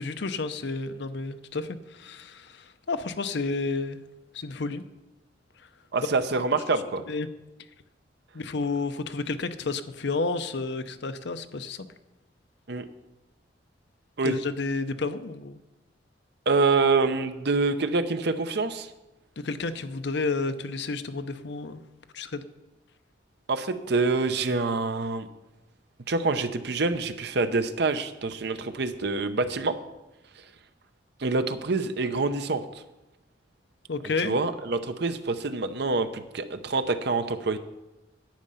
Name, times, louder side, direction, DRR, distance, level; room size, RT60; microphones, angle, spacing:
voice 1, 0.0-4.0 4.3-4.8 7.1-7.3 8.3-11.9 14.2-15.6 19.4-21.8 22.1-22.4 33.9-34.4, left 3 dB, 70° left, 11 dB, 0.7 m, -31 dB
voice 2, 5.9-7.0 12.7-12.9 14.2-14.4 16.5-18.9 23.5-25.3 26.1-29.8 31.2-32.6 34.2-37.6, right 3 dB, 65° right, 10 dB, 0.7 m, -26 dB
10.5 x 8.7 x 5.6 m, 1.0 s
head